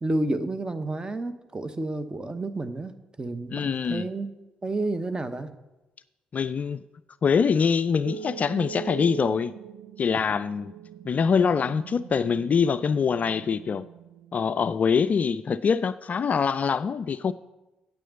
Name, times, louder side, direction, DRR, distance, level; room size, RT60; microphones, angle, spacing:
voice 1, 0.0-2.9 3.2-4.3 4.6-5.5, right 2 dB, 20° right, 0.9 m, -30 dB
voice 2, 3.5-4.1 6.3-6.8 7.2-9.5 10.0-10.7 11.1-13.8 14.3-17.3, left 6 dB, 40° left, 0.3 m, -24 dB
sound 1, 8.0-15.0, right 9 dB, 65° right, 0.4 m, -42 dB
9.1 x 7.4 x 6.7 m
figure-of-eight pair, 40°, 4 cm